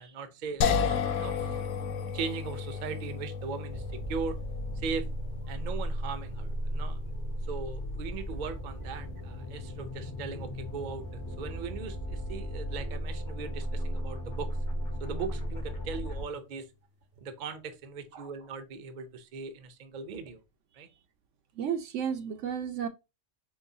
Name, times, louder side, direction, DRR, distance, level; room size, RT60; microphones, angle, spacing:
voice 1, 0.0-1.6 2.1-3.8 4.1-4.4 4.8-5.1 5.5-7.0 7.5-14.5 15.0-16.6 17.2-20.4 20.7-20.9, right 5 dB, 50° right, 0.6 m, -39 dB
sound 1, 0.6-13.7, left 6 dB, 80° left, 0.9 m, -36 dB
sound 2, 3.7-16.2, equal, 20° left, 0.7 m, -36 dB
voice 2, 21.6-22.9, right 8 dB, 75° right, 1.0 m, -33 dB
4.6 x 3.1 x 2.7 m
omnidirectional pair, 1.3 m